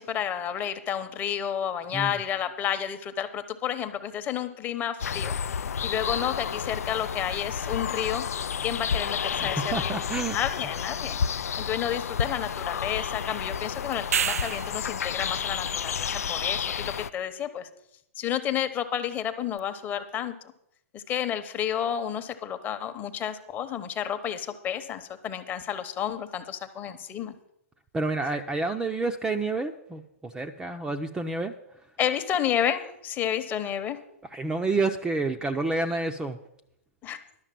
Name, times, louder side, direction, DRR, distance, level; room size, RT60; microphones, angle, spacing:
voice 1, 0.0-5.3 5.8-8.2 8.6-10.0 10.3-11.2 11.6-17.7 18.2-20.3 20.9-27.3 32.0-34.0 37.0-37.2, left 9 dB, 25° left, 9 dB, 0.9 m, -31 dB
sound 1, 5.0-17.1, left 7 dB, 85° left, 0.4 m, -31 dB
voice 2, 9.4-10.4 27.9-31.5 34.3-36.4, right 3 dB, 10° right, 6 dB, 0.5 m, -29 dB
sound 2, 13.9-14.9 19.6-19.7, right 8 dB, 80° right, 0.4 m, -28 dB
11.5 x 6.5 x 7.5 m, 0.78 s
hypercardioid pair, 135°, 8 cm